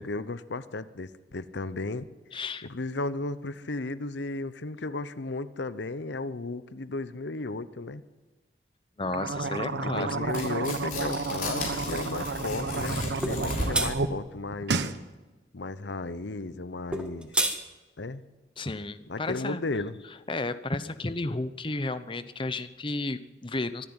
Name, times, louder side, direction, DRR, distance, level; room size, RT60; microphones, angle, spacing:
voice 1, 0.0-2.1 2.6-8.0 9.7-14.8 15.5-17.4 18.0-18.2 19.1-20.0, left 2 dB, 80° left, 15 dB, 0.9 m, -34 dB
voice 2, 2.3-2.7 9.0-10.2 18.6-19.6 20.3-23.9, left 2 dB, 30° left, 12 dB, 0.9 m, -32 dB
sound 1, 9.0-14.1 14.4-15.0, right 3 dB, 75° right, 1.1 m, -31 dB
Tearing, 10.2-14.0, left 2 dB, 50° left, 5.9 m, -35 dB
sound 2, 13.2-13.4 13.7-13.9 16.9-17.6, right 1 dB, 5° right, 1.5 m, -27 dB
24.5 x 11.0 x 9.8 m, 1.2 s
head